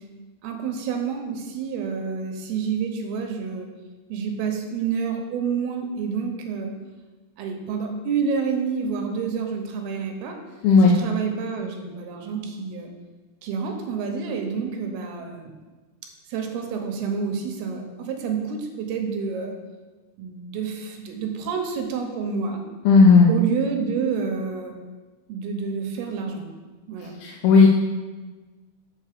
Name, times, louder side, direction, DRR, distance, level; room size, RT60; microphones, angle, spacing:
voice 1, 0.4-3.7 4.1-6.7 7.4-10.4 10.8-12.9 13.4-15.5 16.3-19.5 20.2-22.6 23.3-24.7 25.3-26.5 26.9-27.2, right 6 dB, 85° right, 4 dB, 2.8 m, -28 dB
voice 2, 10.6-11.0 22.9-23.3 27.2-27.7, left 4 dB, 80° left, -1 dB, 2.6 m, -13 dB
7.4 x 4.2 x 6.6 m, 1.3 s
omnidirectional pair, 4.5 m